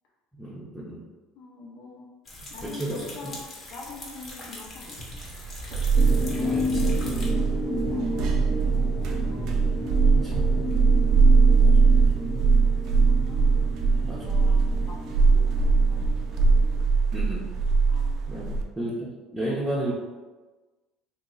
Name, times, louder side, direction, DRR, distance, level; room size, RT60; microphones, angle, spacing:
voice 1, 0.3-1.0 2.4-3.3 6.4-7.1 10.1-10.9 11.6-11.8 14.0-14.2 17.1-17.5 18.3-19.9, right 1 dB, 5° right, -8 dB, 0.7 m, -33 dB
voice 2, 1.3-2.1 2.5-3.4 3.7-5.1 6.3-8.8 9.1-10.7 11.1-11.5 12.3-12.5 13.0-13.6 14.0-15.4 15.9-16.9 17.9-18.2, left 3 dB, 65° left, -2 dB, 0.8 m, -46 dB
sound 1, 2.2-7.3, left 2 dB, 35° left, 1.0 m, -42 dB
sound 2, 5.1-18.6, right 4 dB, 60° right, 0.4 m, -21 dB
sound 3, 6.0-16.8, left 1 dB, 15° left, 0.3 m, -32 dB
2.9 x 2.4 x 3.8 m, 1.3 s
supercardioid pair, 120°, 0 cm